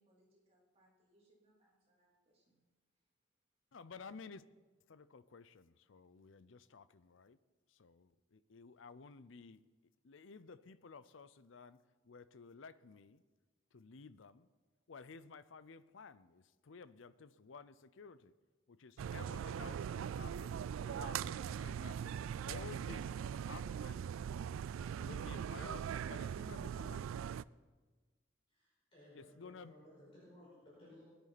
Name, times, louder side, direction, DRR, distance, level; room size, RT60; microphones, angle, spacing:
voice 1, 0.0-2.6, right 1 dB, 30° right, -4 dB, 3.2 m, -73 dB
voice 2, 3.7-4.4 4.9-7.4 7.7-9.6 10.0-11.8 12.0-13.2 13.7-14.5 14.9-18.3 18.7-20.6 20.8-22.0 22.4-24.1 25.0-27.2 29.1-29.7, left 4 dB, 75° left, 15 dB, 0.6 m, -54 dB
sound 1, 19.0-27.4, right 8 dB, 85° right, 0.3 m, -41 dB
voice 3, 28.5-31.0, left 1 dB, 30° left, -8 dB, 5.1 m, -59 dB
21.0 x 10.5 x 4.1 m, 1.3 s
head